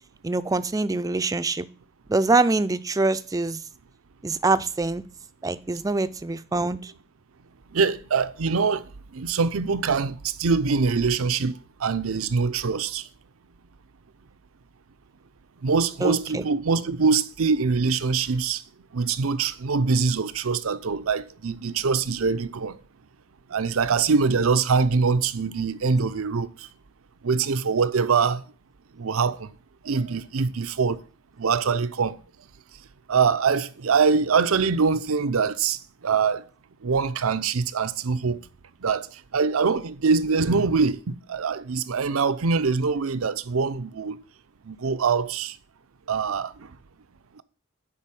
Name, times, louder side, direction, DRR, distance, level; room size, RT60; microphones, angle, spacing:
voice 1, 0.2-1.7 2.1-3.6 4.2-5.0 5.4-6.9 16.0-16.4, right 3 dB, 15° right, 0.4 m, -24 dB
voice 2, 7.7-8.8 9.1-11.5 11.8-13.0 15.6-18.6 18.9-22.7 23.5-26.5 27.2-28.4 29.0-29.5 29.8-31.0 31.4-32.2 33.1-36.4 36.8-38.4 38.8-39.1 39.3-44.2 44.7-45.5 46.1-46.5, right 5 dB, 85° right, 0.6 m, -23 dB
10.0 x 4.1 x 7.6 m
head